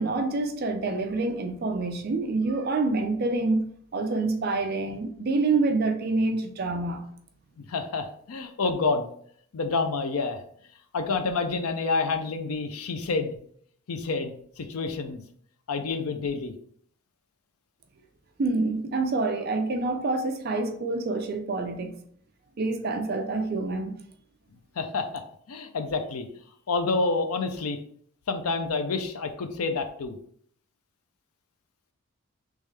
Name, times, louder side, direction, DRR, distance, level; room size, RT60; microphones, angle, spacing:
voice 1, 0.0-3.7 3.9-7.1 18.4-22.0 22.6-23.9, right 3 dB, 45° right, 0.4 m, -27 dB
voice 2, 7.6-9.1 9.5-10.4 10.9-13.4 13.9-15.2 15.7-16.5 24.8-26.3 26.7-27.8 28.3-30.1, left 4 dB, 85° left, 0.5 m, -28 dB
3.5 x 3.1 x 3.2 m
head